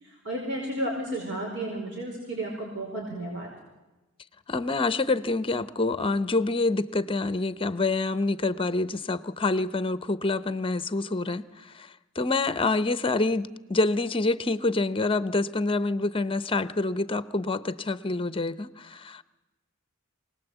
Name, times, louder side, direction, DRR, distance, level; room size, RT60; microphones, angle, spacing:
voice 1, 0.0-3.5, right 1 dB, 60° right, -1 dB, 4.8 m, -33 dB
voice 2, 4.5-11.5 11.7-11.9 12.2-19.2, left 3 dB, 25° left, 15 dB, 0.8 m, -27 dB
25.0 x 19.0 x 8.2 m, 1.1 s
head